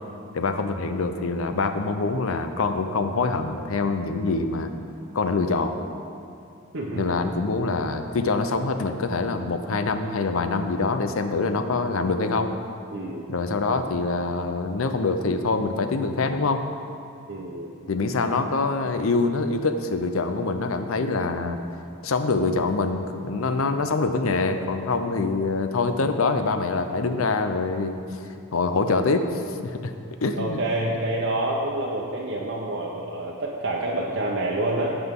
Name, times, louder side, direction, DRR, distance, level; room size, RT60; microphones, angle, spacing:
voice 1, 0.3-4.7 5.1-5.8 6.9-12.5 13.3-16.7 17.9-21.6 22.0-28.0 28.5-29.9 30.2-30.6, left 3 dB, 80° left, 8 dB, 0.7 m, -25 dB
voice 2, 6.7-7.3 12.9-13.3 17.3-17.7 30.4-35.0, right 1 dB, 60° right, -4 dB, 0.9 m, -28 dB
17.0 x 6.0 x 3.7 m, 2.6 s
head